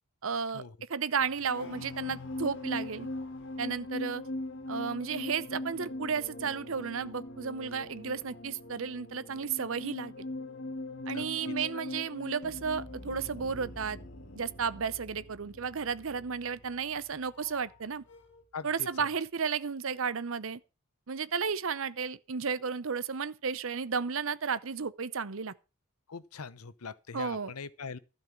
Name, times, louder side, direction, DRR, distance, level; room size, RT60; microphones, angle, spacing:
voice 1, 0.2-3.1 3.6-4.2 4.7-10.2 11.1-14.0 14.3-18.0 18.6-20.6 21.1-25.5 27.1-27.5, right 6 dB, 65° right, 0.7 m, -33 dB
sound 1, 1.2-17.8 18.1-18.4, left 2 dB, 55° left, 1.9 m, -41 dB
voice 2, 11.0-11.5 18.5-18.9 26.1-28.0, left 5 dB, 85° left, 0.8 m, -42 dB
sound 2, 12.4-18.4, right 1 dB, 85° right, 1.9 m, -53 dB
12.5 x 5.6 x 8.2 m
head